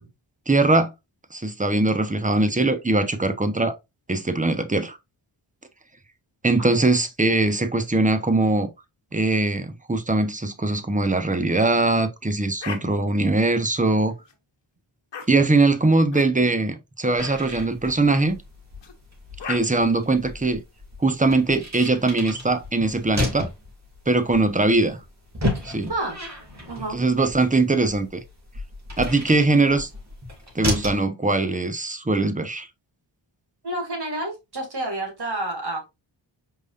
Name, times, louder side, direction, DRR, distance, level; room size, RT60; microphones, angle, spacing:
voice 1, 0.5-0.9 1.3-3.7 4.1-5.0 6.4-8.7 9.1-14.1 15.3-18.4 19.5-20.6 21.0-23.5 24.1-25.0 25.6-25.9 26.9-28.2 29.0-29.9 30.5-32.7, right 2 dB, 15° right, 1.0 m, -21 dB
sound 1, 12.6-12.8 13.8-14.3 15.1-15.3 16.1-16.3 17.1-17.4 18.8-18.9 19.4-19.6, left 6 dB, 65° left, 1.1 m, -35 dB
sound 2, 17.2-31.0, left 1 dB, 35° right, 2.6 m, -33 dB
voice 2, 26.7-27.0 33.6-35.9, right 1 dB, 55° right, 2.6 m, -29 dB
4.9 x 4.0 x 2.5 m
cardioid pair, 50°, 46 cm